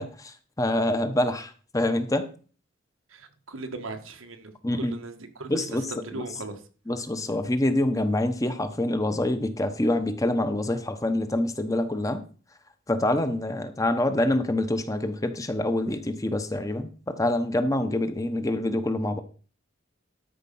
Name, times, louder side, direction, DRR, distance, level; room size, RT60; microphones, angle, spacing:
voice 1, 0.0-2.3 4.6-5.0 5.5-5.9 6.1-6.2 6.9-12.2 12.9-19.2, left 1 dB, 15° left, 0.8 m, -26 dB
voice 2, 3.1-6.6, right 3 dB, 85° right, 1.5 m, -38 dB
12.5 x 5.5 x 5.5 m
head